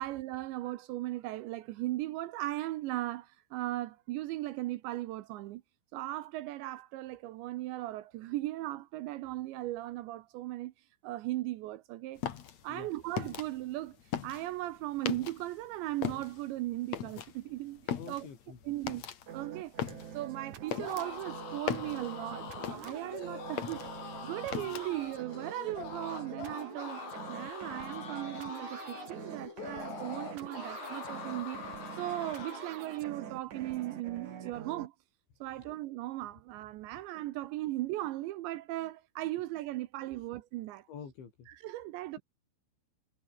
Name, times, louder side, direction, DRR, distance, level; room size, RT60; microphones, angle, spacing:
voice 1, 0.0-5.6 5.9-10.7 11.0-12.2 12.6-14.0 14.2-18.3 18.6-19.0 19.3-19.7 20.1-27.0 27.3-31.6 32.0-34.9 35.4-40.9 41.5-42.2, right 16 dB, 80° right, 2.9 m, -37 dB
sound 1, 12.2-15.6 15.9-23.2 23.5-25.1, left 9 dB, 50° left, 2.2 m, -39 dB
voice 2, 17.9-18.6 40.9-41.5, left 6 dB, 65° left, 7.4 m, -47 dB
sound 2, 19.3-34.9, right 8 dB, 50° right, 2.8 m, -45 dB
sound 3, 20.7-32.8, left 7 dB, 85° left, 7.7 m, -44 dB
omnidirectional pair, 5.7 m